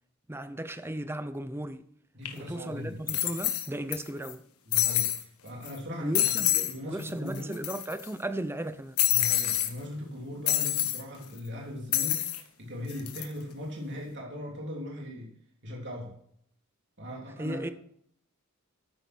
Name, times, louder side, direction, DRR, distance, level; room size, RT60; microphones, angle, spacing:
voice 1, 0.3-1.8 2.4-4.4 6.0-8.9 17.4-17.7, right 1 dB, 10° right, 0.7 m, -35 dB
voice 2, 2.1-3.2 4.7-5.1 5.4-7.7 9.1-15.3 15.6-16.1 17.0-17.6, left 1 dB, 55° right, 3.5 m, -39 dB
sound 1, 2.3-2.4 3.1-4.0 4.2-4.3 4.7-5.2 5.7-5.8 6.1-6.7 7.0-7.1 7.3-8.1 9.0-9.7 10.5-11.0 11.9-12.4 12.9-13.2, left 12 dB, 90° left, 1.6 m, -27 dB
13.5 x 9.5 x 4.5 m
head